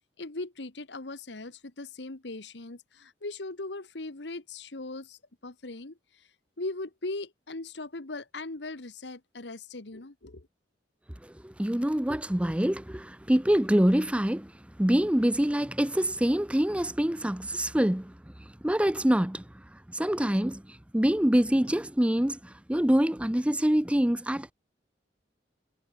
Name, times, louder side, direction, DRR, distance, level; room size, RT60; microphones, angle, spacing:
voice 1, 0.2-6.0 6.6-10.5, left 2 dB, 75° left, 1.5 m, -39 dB
voice 2, 11.2-14.5 14.8-18.1 18.6-19.4 19.9-20.6 20.9-24.5, equal, 5° right, 0.7 m, -25 dB
head